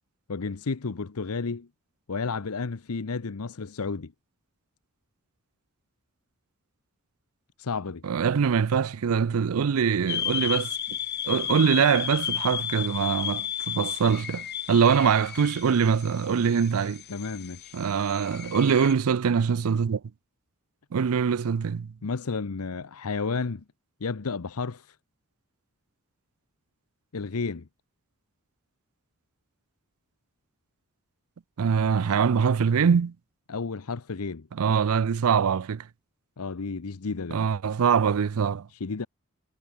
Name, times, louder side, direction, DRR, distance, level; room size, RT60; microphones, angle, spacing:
voice 1, 0.3-1.7 2.1-4.1 7.6-8.0 17.1-17.8 22.0-23.6 24.0-25.0 27.1-27.7 33.5-34.5 36.4-37.4 38.7-39.1, left 4 dB, 85° left, 0.8 m, -32 dB
voice 2, 8.0-10.8 11.3-17.0 17.7-20.0 20.9-21.9 31.6-33.1 34.5-35.9 37.3-38.7, right 6 dB, 75° right, 0.4 m, -23 dB
sound 1, 10.1-18.9, left 9 dB, 50° left, 3.4 m, -33 dB
head